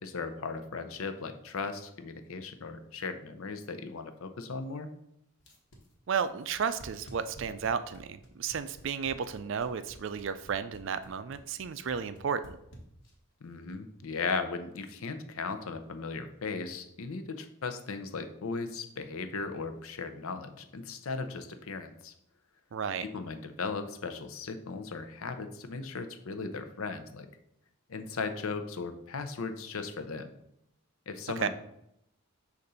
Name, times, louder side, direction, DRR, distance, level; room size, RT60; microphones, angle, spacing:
voice 1, 0.0-4.9 13.4-22.1 23.0-27.3 27.9-30.3 31.1-31.5, left 4 dB, 70° left, 8 dB, 0.6 m, -37 dB
sound 1, 5.4-13.3, right 1 dB, 55° left, 1.2 m, -52 dB
voice 2, 6.1-12.6 22.7-23.0 31.4-31.5, right 6 dB, 55° right, 12 dB, 0.4 m, -33 dB
6.6 x 2.6 x 5.5 m, 0.78 s
head